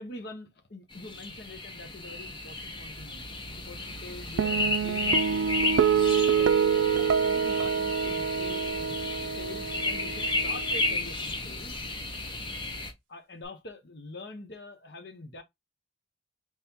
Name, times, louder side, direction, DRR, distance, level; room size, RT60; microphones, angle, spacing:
voice 1, 0.0-5.6 6.2-11.8 13.1-15.4, left 2 dB, 55° left, 1.0 m, -45 dB
sound 1, 0.9-12.9, left 2 dB, 25° left, 0.7 m, -33 dB
sound 2, 4.4-11.0, right 7 dB, 80° right, 0.4 m, -26 dB
3.6 x 3.2 x 2.8 m
head